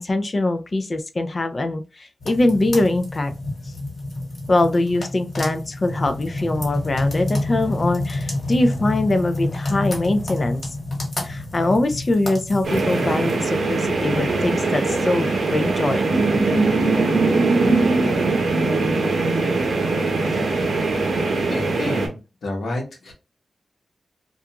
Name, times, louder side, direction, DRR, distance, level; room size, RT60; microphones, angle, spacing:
voice 1, 0.0-3.3 4.5-10.6 11.2-16.1, left 2 dB, 40° left, 0.4 m, -22 dB
sound 1, 2.2-13.4, left 2 dB, 65° left, 1.4 m, -28 dB
sound 2, 12.6-22.1, right 3 dB, 80° right, 0.7 m, -21 dB
voice 2, 21.5-23.1, left 2 dB, 85° left, 1.0 m, -30 dB
2.5 x 2.3 x 2.8 m
wide cardioid pair, 85°, 0 cm